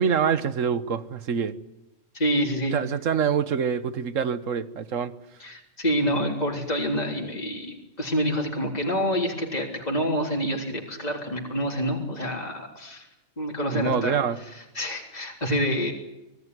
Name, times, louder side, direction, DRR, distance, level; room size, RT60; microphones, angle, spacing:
voice 1, 0.0-1.5 2.7-5.1 13.7-14.4, right 7 dB, 75° right, 1.5 m, -25 dB
voice 2, 2.1-2.7 5.4-13.1 13.4-14.2 14.8-15.9, equal, 30° left, 3.7 m, -27 dB
25.0 x 18.0 x 9.7 m
omnidirectional pair, 1.3 m